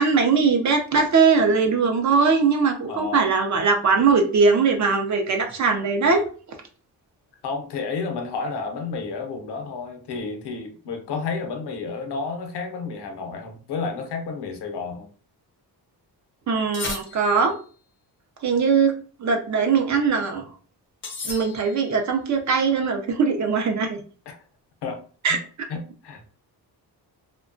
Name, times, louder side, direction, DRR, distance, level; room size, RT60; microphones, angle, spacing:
voice 1, 0.0-6.2 16.5-17.5 18.4-18.9 19.2-20.4 21.2-24.0 25.2-25.4, right 5 dB, 45° right, 0.4 m, -20 dB
voice 2, 2.9-3.3 7.4-15.1 24.3-24.4 24.8-25.0 25.3-25.4 25.7-26.3, left 4 dB, 75° left, 0.7 m, -31 dB
sound 1, 16.7-17.6 21.0-22.0, left 3 dB, 30° left, 0.5 m, -35 dB
2.7 x 2.2 x 2.5 m
wide cardioid pair, 175°, 41 cm